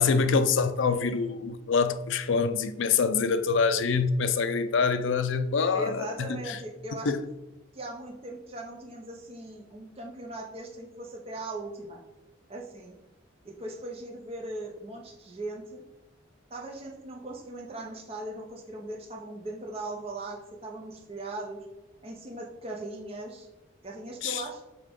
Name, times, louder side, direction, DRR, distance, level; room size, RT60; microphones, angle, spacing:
voice 1, 0.0-6.6 7.1-7.2 24.2-24.4, left 5 dB, 70° left, 0.5 m, -25 dB
voice 2, 5.7-7.1 7.7-12.0 12.5-12.9 13.4-15.8 16.5-21.6 22.0-23.5 23.8-24.6, right 2 dB, 30° right, 0.8 m, -39 dB
5.5 x 3.7 x 5.2 m
head